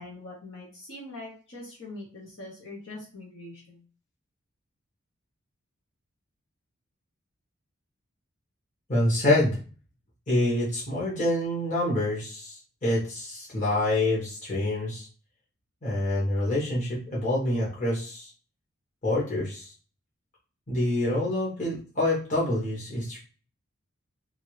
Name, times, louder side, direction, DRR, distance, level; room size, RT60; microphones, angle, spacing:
voice 1, 0.0-3.8, left 2 dB, 65° left, -4 dB, 1.1 m, -43 dB
voice 2, 8.9-9.6 10.3-15.1 15.8-18.3 19.0-19.7 20.7-23.2, left 1 dB, 40° left, -6 dB, 1.2 m, -26 dB
2.7 x 2.7 x 3.0 m, 0.38 s
head